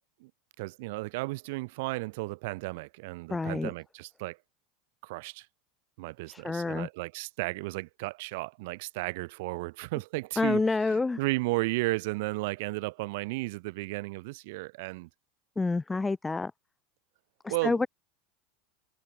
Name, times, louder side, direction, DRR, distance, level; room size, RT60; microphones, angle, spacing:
voice 1, 0.6-4.4 5.0-5.5 6.0-15.1 17.5-17.9, right 23 dB, 60° right, 2.3 m, -34 dB
voice 2, 3.3-3.7 6.3-6.9 10.4-11.2 15.6-16.5 17.4-17.9, left 3 dB, 15° left, 0.6 m, -28 dB
hypercardioid pair, 85°, 0 cm